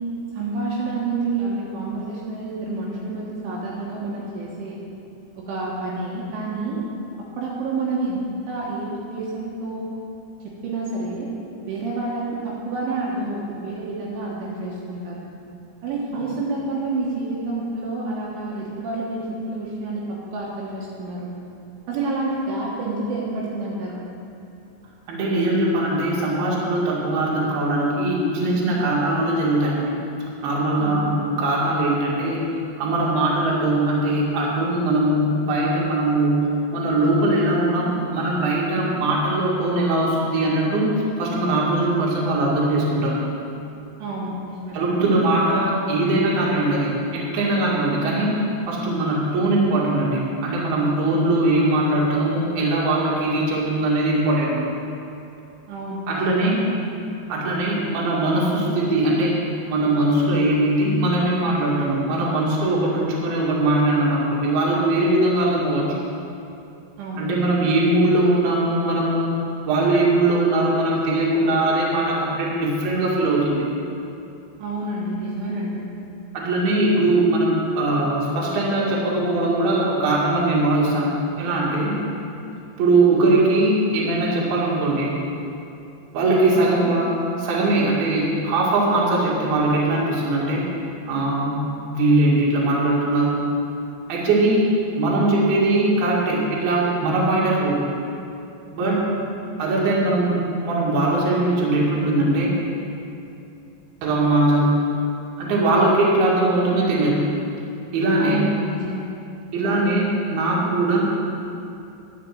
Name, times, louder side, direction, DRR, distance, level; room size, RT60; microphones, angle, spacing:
voice 1, 0.3-4.7 5.4-6.9 7.4-8.2 8.5-9.9 10.6-11.3 11.7-15.2 15.8-21.3 21.9-24.0 30.8-31.1 44.0-44.9 55.7-56.8 67.0-67.3 67.6-67.7 74.6-75.8 86.6-86.9 98.8-99.0 108.2-109.0, right 3 dB, 75° right, -5 dB, 3.7 m, -28 dB
voice 2, 25.1-30.0 30.4-32.4 32.8-36.4 36.7-43.2 44.7-48.3 48.7-54.6 56.1-56.6 57.3-59.4 59.7-66.0 67.2-73.6 76.3-82.0 82.8-85.2 86.1-87.1 87.4-90.7 91.1-91.6 91.9-93.4 94.1-94.7 95.0-97.9 98.7-99.0 99.6-102.5 104.0-104.7 105.4-107.3 107.9-108.4 109.5-111.0, right 2 dB, 55° right, -5 dB, 3.6 m, -21 dB
11.0 x 7.7 x 7.7 m, 2.7 s
omnidirectional pair, 5.8 m